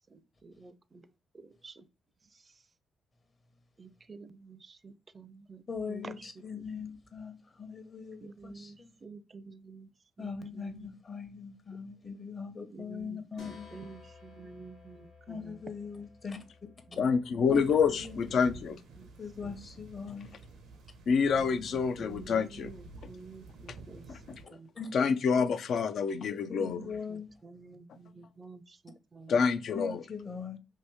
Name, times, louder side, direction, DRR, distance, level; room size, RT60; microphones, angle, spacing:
voice 1, 0.1-1.0 1.3-1.9 2.3-2.4 3.8-5.6 5.9-6.2 6.5-6.8 8.2-9.9 10.2-10.9 12.7-15.6 16.9-17.4 18.3-18.6 19.0-19.5 21.4-24.0 24.5-24.7 26.6-29.4, right 4 dB, 40° right, 0.4 m, -50 dB
voice 2, 5.7-8.9 10.2-13.8 15.3-16.4 16.9-17.0 17.5-17.6 17.9-18.2 19.2-20.3 24.7-24.9 26.3-27.3 29.7-30.6, left 5 dB, 45° left, 0.8 m, -41 dB
sound 1, 13.4-18.8, left 4 dB, 90° left, 1.1 m, -56 dB
voice 3, 17.0-18.8 21.1-22.7 24.1-24.6 24.9-26.9 29.3-30.0, left 6 dB, 70° left, 0.3 m, -27 dB
sound 2, 17.4-24.4, right 3 dB, 85° right, 0.7 m, -51 dB
2.8 x 2.7 x 3.3 m
supercardioid pair, 60°, 0 cm